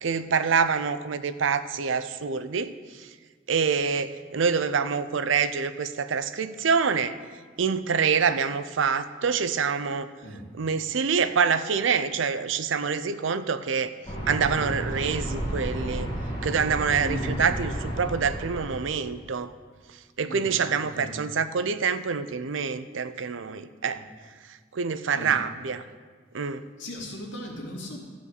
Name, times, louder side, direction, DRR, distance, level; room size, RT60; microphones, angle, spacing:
voice 1, 0.0-3.1 3.5-7.1 7.6-10.1 10.5-13.9 14.3-16.1 16.4-19.5 20.2-24.0 24.5-25.8 26.3-26.6, right 6 dB, 80° right, 12 dB, 0.5 m, -26 dB
sound 1, 14.0-19.0, right 1 dB, 20° left, 2.0 m, -32 dB
voice 2, 17.0-17.4 20.3-21.2 23.9-24.0 25.2-25.3 26.8-28.1, left 1 dB, 80° left, -2 dB, 2.4 m, -37 dB
13.5 x 5.2 x 8.0 m, 1.5 s
head